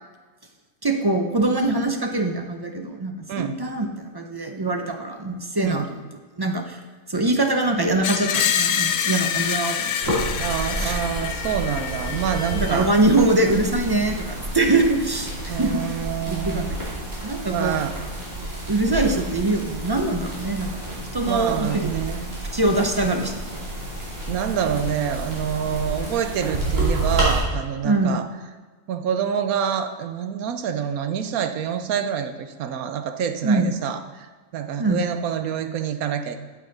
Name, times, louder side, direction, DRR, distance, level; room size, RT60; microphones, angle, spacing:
voice 1, 0.8-6.0 6.4-6.8 7.1-10.2 10.8-11.0 12.5-15.8 16.3-16.9 17.2-17.8 18.7-21.9 22.5-23.4 27.8-28.2 33.4-33.7 34.8-35.0, right 2 dB, 30° right, 4 dB, 0.4 m, -23 dB
Screech, 8.0-13.0, left 8 dB, 60° left, 0.7 m, -26 dB
sound 1, 10.0-27.4, right 2 dB, 60° right, 3.1 m, -30 dB
voice 2, 10.4-12.9 15.5-16.7 17.5-18.0 21.2-22.3 24.3-28.3 28.9-34.3 34.5-36.4, right 8 dB, 90° right, 9 dB, 1.2 m, -27 dB
8.7 x 8.3 x 4.0 m, 1.3 s
omnidirectional pair, 1.5 m